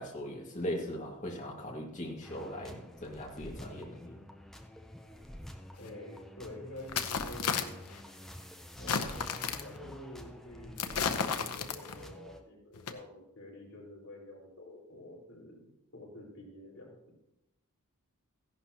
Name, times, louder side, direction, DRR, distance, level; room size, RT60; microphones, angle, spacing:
voice 1, 0.0-4.2, left 1 dB, 35° left, -1 dB, 2.1 m, -39 dB
sound 1, 2.2-12.4, equal, ahead, 0.7 m, -48 dB
sound 2, 5.8-5.9 6.8-8.0 8.8-9.8 10.8-12.1 12.7-12.9, left 6 dB, 90° left, 0.9 m, -33 dB
voice 2, 5.8-7.7 8.8-15.7 15.9-17.0, left 1 dB, 65° left, -4 dB, 4.5 m, -48 dB
15.0 x 11.0 x 3.0 m, 0.89 s
head